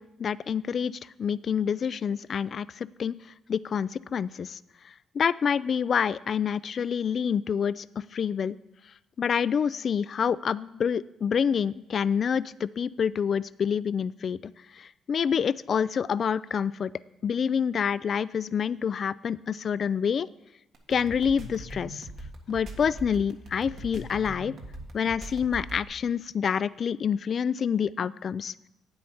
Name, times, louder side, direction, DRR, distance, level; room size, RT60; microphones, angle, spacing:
voice 1, 0.0-3.2 3.5-4.6 5.1-7.9 8.1-8.6 9.2-16.9 17.2-20.3 20.9-22.1 22.5-24.5 24.9-28.5, left 7 dB, 50° left, 18 dB, 0.3 m, -27 dB
sound 1, 20.7-25.9, right 1 dB, 70° right, 1.6 m, -41 dB
8.9 x 7.6 x 5.6 m, 0.91 s
cardioid pair, 90°, 0 cm